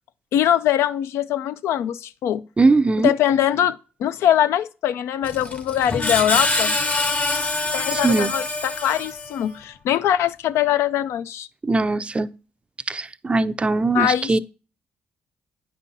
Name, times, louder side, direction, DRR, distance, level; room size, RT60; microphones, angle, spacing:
voice 1, 0.3-2.4 3.0-6.7 7.7-11.5 13.9-14.4, left 11 dB, 80° left, 0.3 m, -22 dB
voice 2, 2.6-3.1 7.9-8.3 11.6-12.3 12.9-14.4, right 3 dB, 25° right, 0.4 m, -20 dB
Screech, 5.2-9.5, left 2 dB, 35° left, 0.9 m, -25 dB
8.9 x 5.3 x 2.7 m
supercardioid pair, 70°, 4 cm